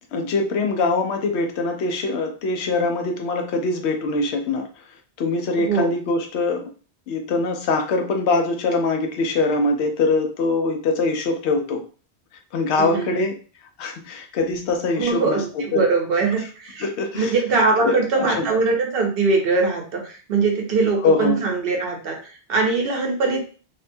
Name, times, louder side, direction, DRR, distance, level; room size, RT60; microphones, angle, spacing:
voice 1, 0.1-4.7 5.2-6.7 7.1-11.9 12.5-13.3 13.8-15.8 16.8-17.3 17.8-18.5 21.0-21.4, left 3 dB, 85° left, 4 dB, 0.9 m, -23 dB
voice 2, 12.8-13.2 15.0-16.9 17.1-23.4, right 4 dB, 65° right, 2 dB, 0.8 m, -22 dB
2.6 x 2.2 x 2.5 m, 0.38 s
omnidirectional pair, 1.1 m